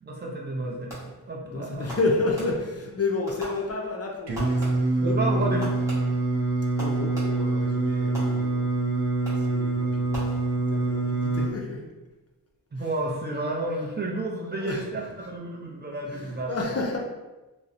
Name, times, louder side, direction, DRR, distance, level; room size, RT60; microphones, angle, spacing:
voice 1, 0.0-1.9 5.0-5.6 12.7-16.5, right 2 dB, 25° right, -1 dB, 0.5 m, -31 dB
Fireworks, 0.9-1.3 1.9-2.9 3.3-4.0 4.3-5.1 5.6-7.6 8.2-8.8 9.3-9.7 10.1-10.9, equal, 10° right, 0.9 m, -41 dB
voice 2, 1.4-5.6 6.8-8.7 9.3-10.3 10.7-11.8 12.8-12.9 14.5-14.9 16.1-17.0, left 3 dB, 40° left, -1 dB, 0.4 m, -31 dB
Singing, 4.3-11.5, right 3 dB, 85° right, 0.5 m, -25 dB
2.6 x 2.0 x 2.4 m, 1.1 s
wide cardioid pair, 70°, 41 cm